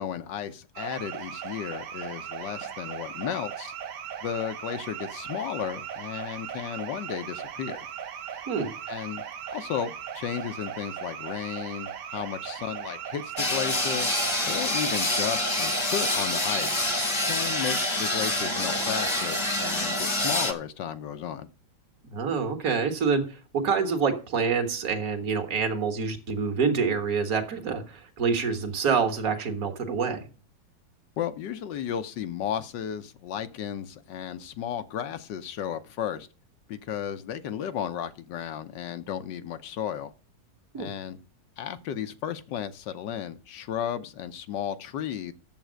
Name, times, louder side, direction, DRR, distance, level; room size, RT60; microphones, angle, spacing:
voice 1, 0.0-3.7 4.2-7.9 8.3-8.4 8.9-14.1 14.4-16.9 17.2-21.5 31.2-36.3 36.7-40.1 40.7-41.2 41.6-45.3, left 9 dB, 80° left, 1.4 m, -34 dB
sound 1, 0.7-20.6, right 8 dB, 70° right, 1.5 m, -38 dB
sound 2, 13.4-20.5, left 2 dB, 20° left, 1.0 m, -27 dB
voice 2, 22.0-30.3 40.7-40.9, right 5 dB, 50° right, 1.9 m, -27 dB
9.1 x 7.4 x 6.3 m
omnidirectional pair, 1.9 m